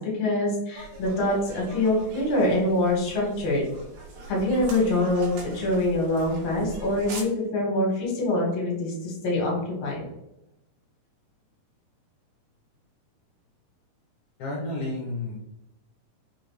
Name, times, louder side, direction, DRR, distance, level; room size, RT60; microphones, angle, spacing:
voice 1, 0.0-3.6 4.3-10.0, left 1 dB, 55° left, -2 dB, 2.3 m, -25 dB
sound 1, 0.7-7.2, right 3 dB, 80° right, 2.4 m, -41 dB
voice 2, 14.4-15.4, left 2 dB, 70° left, -4 dB, 2.2 m, -31 dB
5.4 x 2.6 x 3.1 m, 0.86 s
omnidirectional pair, 3.8 m